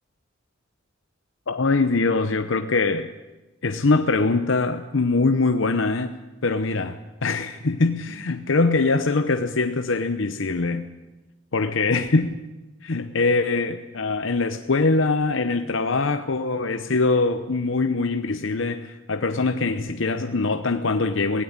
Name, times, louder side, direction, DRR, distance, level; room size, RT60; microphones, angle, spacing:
voice 1, 1.5-3.1 3.6-6.1 6.4-10.8 11.5-12.4 12.8-21.4, left 3 dB, 65° left, 8 dB, 0.8 m, -23 dB
17.0 x 16.5 x 9.7 m, 1.1 s
head